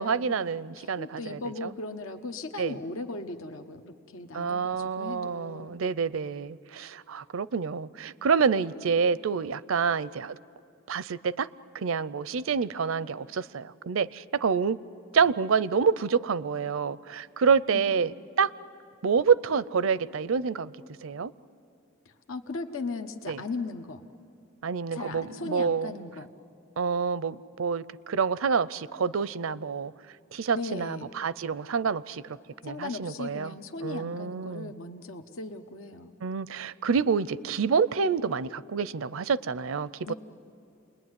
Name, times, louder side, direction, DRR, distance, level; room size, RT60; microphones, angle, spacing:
voice 1, 0.0-1.7 2.6-2.8 4.3-10.4 10.9-11.5 11.7-14.8 15.1-18.5 19.0-20.7 21.0-21.3 23.3-23.4 24.6-25.9 26.8-29.9 30.3-32.2 32.6-33.5 33.8-34.7 36.2-40.1, right 6 dB, 75° right, 18 dB, 0.5 m, -27 dB
voice 2, 0.8-5.7 17.7-18.1 22.3-24.1 24.9-26.3 30.5-31.1 32.6-36.1 40.1-40.2, left 3 dB, 75° left, 7 dB, 1.1 m, -38 dB
28.5 x 21.0 x 9.6 m, 2.7 s
head